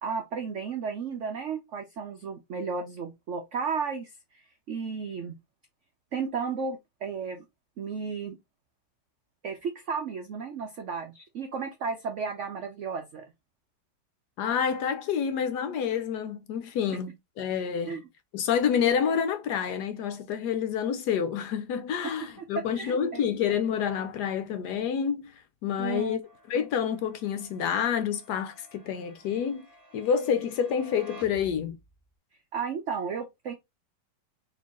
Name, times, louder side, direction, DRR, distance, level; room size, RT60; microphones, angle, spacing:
voice 1, 0.0-5.4 6.1-7.5 7.8-8.4 9.4-13.3 17.8-18.0 22.7-23.2 25.8-26.2 32.5-33.5, right 5 dB, 80° right, 0.6 m, -34 dB
voice 2, 14.4-18.0 18.3-26.2 26.5-29.7 29.9-31.8, left 7 dB, 75° left, 1.0 m, -28 dB
sound 1, 26.2-32.1, equal, 10° right, 1.3 m, -53 dB
4.3 x 3.1 x 2.9 m
omnidirectional pair, 2.1 m